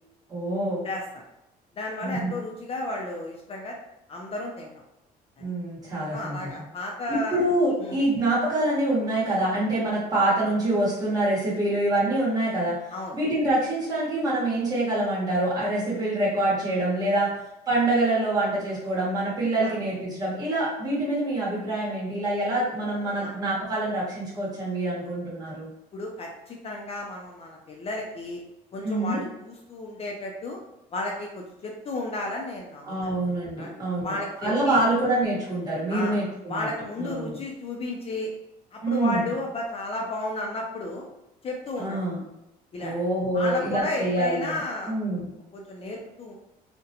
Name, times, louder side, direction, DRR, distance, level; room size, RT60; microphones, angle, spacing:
voice 1, 0.3-0.8 2.0-2.3 5.4-6.4 7.1-12.8 13.1-17.3 17.7-25.7 28.8-29.2 32.9-34.1 34.4-36.7 37.0-37.4 38.8-39.3 41.8-42.2 42.8-44.6 44.9-45.3, right 1 dB, 20° right, -7 dB, 1.1 m, -25 dB
voice 2, 0.8-1.2 1.8-3.8 4.1-4.7 6.1-7.4 7.8-8.0 12.9-13.2 17.2-17.3 19.6-19.7 23.2-23.3 25.9-28.4 28.7-30.6 30.9-33.1 33.6-33.7 34.0-34.8 35.9-36.2 36.5-38.3 38.7-41.1 41.4-42.0 42.7-42.9 43.3-44.9 45.5-46.4, left 2 dB, 35° left, 0 dB, 0.4 m, -33 dB
2.4 x 2.1 x 2.7 m, 0.86 s
cardioid pair, 110°, 17 cm